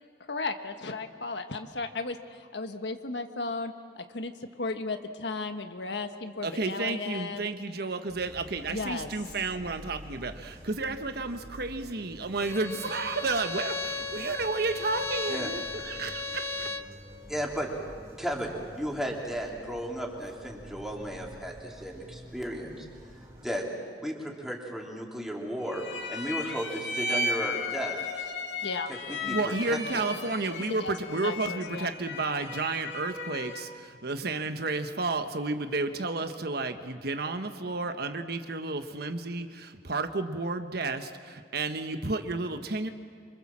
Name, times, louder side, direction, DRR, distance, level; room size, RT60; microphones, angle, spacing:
voice 1, 0.3-4.3 4.6-7.5 8.7-9.1 28.6-28.9 30.8-30.9 31.2-31.9, left 3 dB, 75° left, 7 dB, 1.5 m, -35 dB
voice 2, 6.4-16.7 29.2-42.9, right 3 dB, 65° right, 8 dB, 1.3 m, -32 dB
sound 1, 8.1-23.5, equal, 20° right, 5.6 m, -49 dB
Bowed string instrument, 12.4-16.9, left 3 dB, 15° left, 1.2 m, -36 dB
voice 3, 17.3-17.7 18.2-22.9 23.4-23.7 24.0-25.8 26.1-28.3 29.1-30.1, equal, ahead, -1 dB, 3.6 m, -34 dB
sound 2, 25.7-33.8, left 2 dB, 90° left, 2.5 m, -35 dB
27.0 x 24.5 x 7.5 m, 2.2 s
head